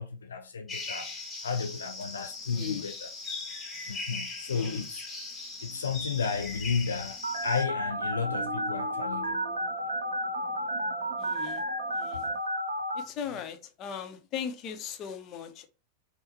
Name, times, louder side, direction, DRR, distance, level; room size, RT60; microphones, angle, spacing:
voice 1, 0.0-3.1 3.9-5.1 5.6-9.4 12.1-12.2, left 5 dB, 70° left, 0.4 m, -33 dB
sound 1, 0.7-7.6, left 3 dB, 15° left, 1.3 m, -39 dB
sound 2, 1.7-3.1 3.4-4.0 4.4-4.5 5.2-12.4, right 6 dB, 25° right, 0.9 m, -49 dB
voice 2, 2.5-2.8 4.5-4.8 11.2-11.6 11.9-12.3 12.9-15.7, left 8 dB, 35° left, 0.8 m, -38 dB
Telephone, 7.2-13.0, equal, 75° right, 0.7 m, -32 dB
5.6 x 2.2 x 4.0 m
figure-of-eight pair, 90°, 0 cm